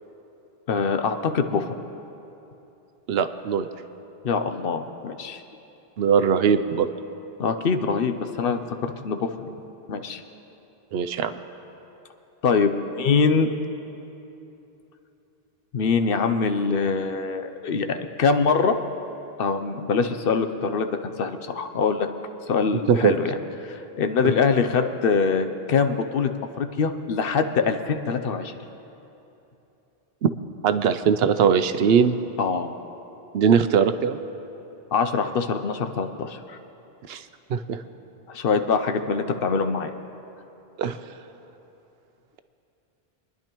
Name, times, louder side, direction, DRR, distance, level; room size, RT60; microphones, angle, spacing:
voice 1, 0.7-1.8 4.2-5.4 7.4-9.5 9.9-10.2 12.4-13.5 15.7-18.8 19.4-20.9 21.2-22.1 22.5-26.3 26.6-28.5 32.4-32.8 34.9-36.6 38.3-39.9, left 5 dB, 65° left, 7 dB, 0.8 m, -24 dB
voice 2, 3.1-3.7 6.0-6.9 10.9-11.3 22.9-23.2 30.2-30.3 30.6-32.2 33.3-34.2 37.1-37.2 37.5-37.8 40.8-41.0, right 7 dB, 75° right, 10 dB, 0.8 m, -20 dB
27.0 x 10.5 x 3.0 m, 2.9 s
omnidirectional pair, 1.0 m